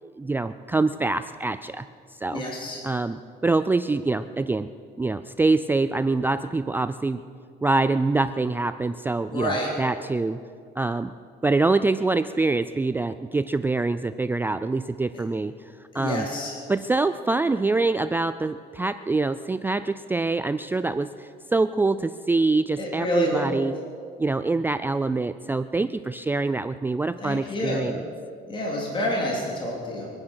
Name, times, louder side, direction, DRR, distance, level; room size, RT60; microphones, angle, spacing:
voice 1, 0.0-1.9 2.2-2.4 2.8-4.7 5.0-7.2 7.6-10.4 10.8-11.1 11.4-15.5 15.9-16.3 16.7-23.7 24.2-28.0, right 3 dB, 10° right, 12 dB, 0.4 m, -25 dB
voice 2, 2.3-2.8 9.3-9.7 15.9-16.5 22.8-23.4 27.2-27.8 28.5-30.1, left 1 dB, 30° left, -2 dB, 3.3 m, -28 dB
23.5 x 9.7 x 6.3 m, 2.2 s
cardioid pair, 110°, 17 cm